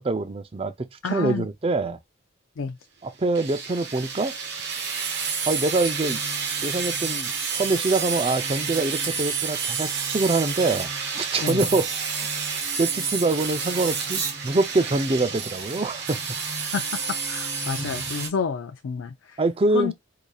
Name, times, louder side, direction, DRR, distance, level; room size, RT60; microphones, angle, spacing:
voice 1, 0.0-2.0 3.0-4.3 4.8-4.9 5.5-6.2 6.6-12.3 12.8-16.4 19.4-19.9, right 2 dB, 30° right, 0.5 m, -25 dB
voice 2, 1.0-1.5 2.6-2.8 11.4-11.6 16.7-16.8 17.1-19.4 19.7-19.9, left 5 dB, 85° left, 0.5 m, -29 dB
sound 1, 3.3-18.3, right 5 dB, 55° right, 1.2 m, -29 dB
4.8 x 2.7 x 2.3 m
head